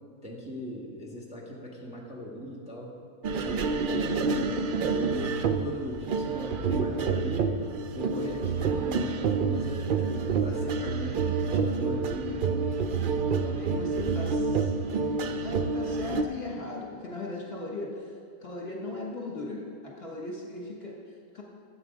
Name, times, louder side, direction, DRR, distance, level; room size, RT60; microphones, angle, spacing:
voice 1, 0.2-3.0 3.3-7.6 7.9-12.7, left 1 dB, 5° right, -1 dB, 1.4 m, -38 dB
sound 1, 3.2-16.2, right 4 dB, 90° right, 0.4 m, -28 dB
voice 2, 13.4-18.1 18.4-21.4, left 2 dB, 40° left, -2 dB, 1.5 m, -38 dB
12.5 x 8.2 x 5.2 m, 2.3 s
omnidirectional pair, 1.6 m